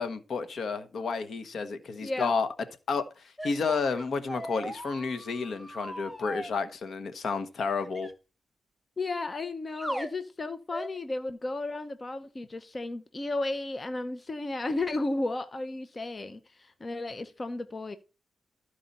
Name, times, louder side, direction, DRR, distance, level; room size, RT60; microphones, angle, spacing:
voice 1, 0.0-2.5 2.9-8.1, left 4 dB, 65° left, 1.2 m, -31 dB
voice 2, 2.0-2.3 9.0-18.0, left 2 dB, 35° left, 0.8 m, -33 dB
sound 1, 3.4-6.5 7.8-8.1 9.8-10.1 10.7-11.0, right 1 dB, ahead, 1.1 m, -39 dB
13.0 x 4.8 x 4.2 m
cardioid pair, 75°, 0 cm